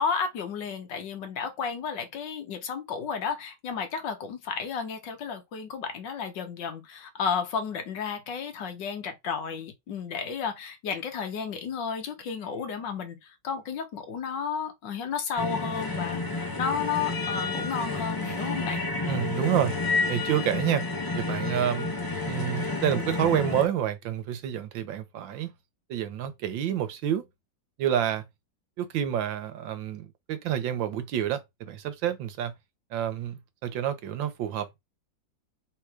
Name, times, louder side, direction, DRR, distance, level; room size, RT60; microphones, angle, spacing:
voice 1, 0.0-18.8, left 6 dB, 75° left, 1.7 m, -32 dB
sound 1, 15.4-23.7, left 3 dB, 35° left, 0.3 m, -30 dB
voice 2, 19.1-19.7 20.1-20.8 21.1-21.9 22.3-25.5 25.9-27.2 27.8-28.2 28.8-32.5 32.9-34.8, right 10 dB, 85° right, 1.6 m, -28 dB
3.8 x 2.9 x 4.7 m
omnidirectional pair, 2.0 m